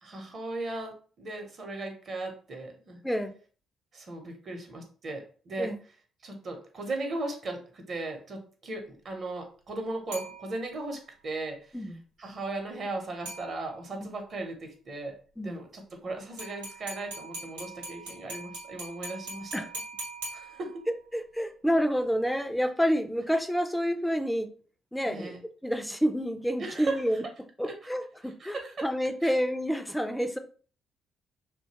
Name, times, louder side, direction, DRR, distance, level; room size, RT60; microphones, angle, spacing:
voice 1, 0.0-3.0 3.9-5.7 6.2-11.8 12.2-15.2 15.4-19.6 20.3-20.8 25.1-25.4 26.6-27.0 27.6-27.7 28.2-28.7 29.2-29.3, right 2 dB, 50° right, 4 dB, 0.8 m, -37 dB
sound 1, 10.1-10.9 13.3-14.0 16.4-21.0, right 2 dB, 90° right, 0.7 m, -42 dB
voice 2, 21.1-24.5 24.9-25.4 25.6-27.2 27.6-30.4, equal, 5° left, 7 dB, 0.4 m, -28 dB
2.7 x 2.2 x 2.8 m, 0.41 s
hypercardioid pair, 45°, 0 cm